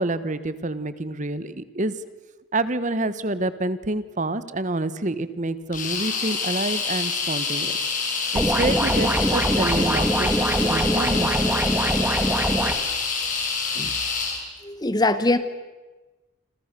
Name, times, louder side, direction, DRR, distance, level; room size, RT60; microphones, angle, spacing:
voice 1, 0.0-1.9 2.5-7.7 8.3-11.4, right 2 dB, 40° right, 14 dB, 1.2 m, -27 dB
sound 1, 5.7-14.4, left 5 dB, 45° left, 5.4 m, -27 dB
sound 2, 8.4-12.7, right 1 dB, 10° right, 1.9 m, -23 dB
voice 2, 14.6-15.4, left 2 dB, 20° left, 12 dB, 1.2 m, -22 dB
28.5 x 27.0 x 6.8 m, 1.2 s
head